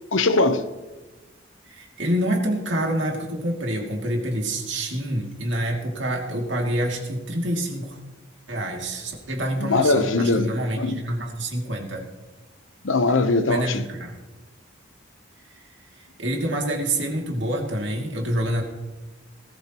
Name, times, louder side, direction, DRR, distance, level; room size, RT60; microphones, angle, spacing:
voice 1, 0.1-0.6 9.6-10.5 10.8-11.0 12.8-13.8, left 3 dB, 75° left, 1.0 m, -21 dB
voice 2, 1.7-8.0 8.5-12.0 13.5-14.1 16.0-18.6, right 1 dB, 65° right, 2.6 m, -27 dB
19.5 x 13.5 x 3.1 m
head